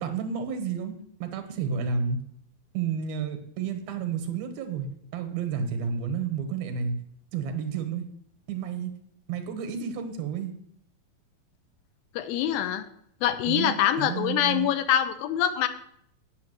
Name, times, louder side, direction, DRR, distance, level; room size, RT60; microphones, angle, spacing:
voice 1, 0.0-2.2 2.7-7.0 7.3-8.0 8.5-8.9 9.3-10.5 13.5-14.7, right 6 dB, 85° right, 7 dB, 3.1 m, -31 dB
voice 2, 12.2-12.9 13.2-15.7, left 10 dB, 85° left, 10 dB, 2.6 m, -25 dB
8.4 x 6.7 x 8.0 m, 0.69 s
omnidirectional pair, 4.1 m